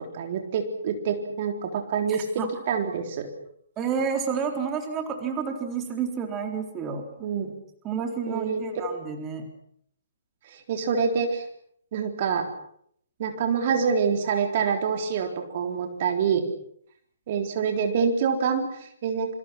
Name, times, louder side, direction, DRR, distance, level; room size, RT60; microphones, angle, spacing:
voice 1, 0.0-3.3 7.2-7.5 8.3-8.6 10.5-11.4 11.9-12.4 13.2-16.4 17.3-19.3, right 6 dB, 40° right, 5 dB, 3.7 m, -26 dB
voice 2, 2.1-2.5 3.8-7.3 7.8-9.5, right 6 dB, 20° right, 4 dB, 3.7 m, -30 dB
27.5 x 25.5 x 6.0 m, 0.67 s
figure-of-eight pair, 130°, 0 cm